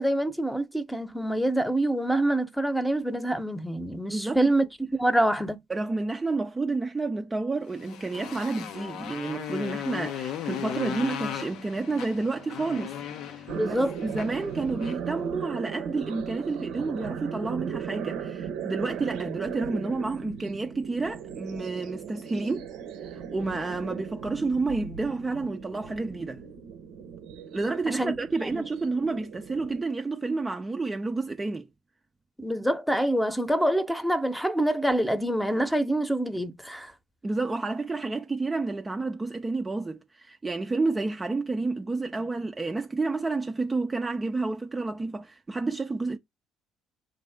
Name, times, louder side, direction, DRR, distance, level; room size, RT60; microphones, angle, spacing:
voice 1, 0.0-4.7 4.9-5.6 13.5-14.0 27.9-28.1 28.5-28.6 32.4-36.9, right 1 dB, 5° left, 0.9 m, -26 dB
voice 2, 4.1-4.5 5.7-12.9 13.3-22.7 23.3-26.4 27.5-31.7 37.2-46.2, right 3 dB, 20° right, 0.4 m, -30 dB
Motorcycle, 7.7-15.1, left 9 dB, 65° left, 0.5 m, -37 dB
sound 1, 13.5-29.8, right 7 dB, 70° right, 0.7 m, -37 dB
4.0 x 2.6 x 3.4 m
hypercardioid pair, 50°, 0 cm